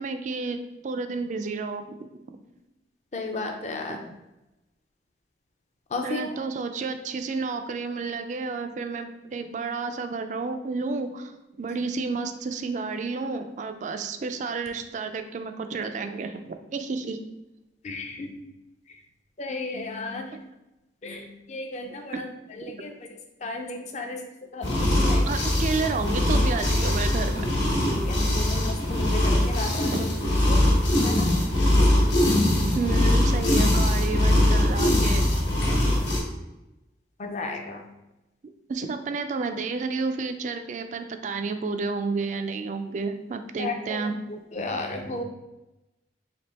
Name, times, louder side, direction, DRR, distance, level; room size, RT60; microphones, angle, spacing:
voice 1, 0.0-2.0 3.9-4.0 6.0-17.2 22.1-22.2 25.3-27.5 29.9-30.0 32.7-35.2 38.7-44.1, right 4 dB, 40° right, 8 dB, 0.3 m, -31 dB
voice 2, 3.1-4.0 5.9-6.4 17.8-18.3 19.4-20.3 21.0-22.3 22.6-22.9 23.4-24.2 24.5-25.3 27.9-30.1 30.5-30.6 31.0-31.3 37.2-37.8 43.6-44.0 44.5-45.2, left 2 dB, 40° left, 3 dB, 0.5 m, -33 dB
sound 1, 24.6-36.2, left 1 dB, 75° left, 1.2 m, -22 dB
3.4 x 2.9 x 4.0 m, 0.97 s
head